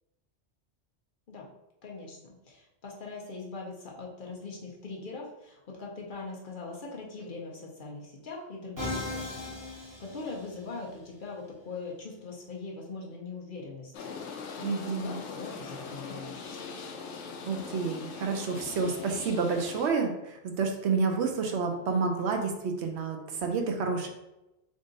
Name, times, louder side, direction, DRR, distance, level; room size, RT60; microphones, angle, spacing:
voice 1, 1.8-16.6, left 3 dB, 50° left, -2 dB, 0.8 m, -42 dB
Musical instrument, 8.8-10.9, left 2 dB, 20° right, 0.9 m, -37 dB
sound 1, 13.9-19.9, left 5 dB, 80° left, 0.9 m, -41 dB
voice 2, 14.6-15.2 17.5-24.1, right 4 dB, 70° right, 4 dB, 0.8 m, -29 dB
3.6 x 2.5 x 3.8 m, 0.94 s
omnidirectional pair, 1.2 m